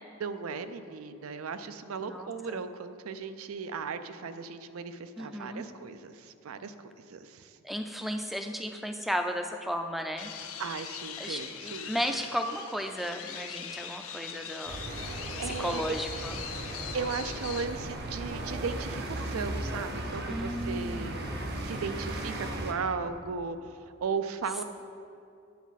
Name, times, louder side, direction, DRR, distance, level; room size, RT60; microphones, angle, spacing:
voice 1, 0.2-6.7 7.1-7.5 10.6-11.9 14.9-15.8 16.9-21.1 21.6-23.7 24.0-24.6, right 5 dB, 80° right, 11 dB, 0.4 m, -36 dB
voice 2, 2.0-2.6 5.2-5.7 7.6-10.3 11.2-14.8 15.4-16.4 20.3-21.5, equal, ahead, 5 dB, 0.4 m, -34 dB
sound 1, 10.2-17.6, left 8 dB, 80° left, 0.6 m, -41 dB
sound 2, 14.7-22.7, right 1 dB, 50° right, 0.7 m, -36 dB
9.3 x 7.0 x 4.1 m, 2.5 s
head